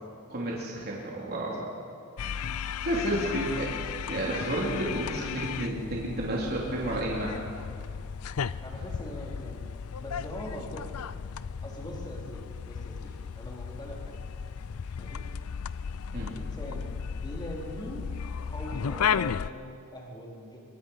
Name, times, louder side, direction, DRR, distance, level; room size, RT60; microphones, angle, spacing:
voice 1, 0.3-1.7 2.8-7.4 16.1-16.3, right 1 dB, 45° right, -4 dB, 3.5 m, -31 dB
sound 1, 2.2-19.5, left 7 dB, 75° left, 0.5 m, -35 dB
voice 2, 8.6-9.7 10.0-10.9 11.6-14.1 15.0-15.2 16.1-18.1 18.4-20.6, equal, 20° left, -2 dB, 4.1 m, -42 dB
24.0 x 23.0 x 5.7 m, 2.4 s
head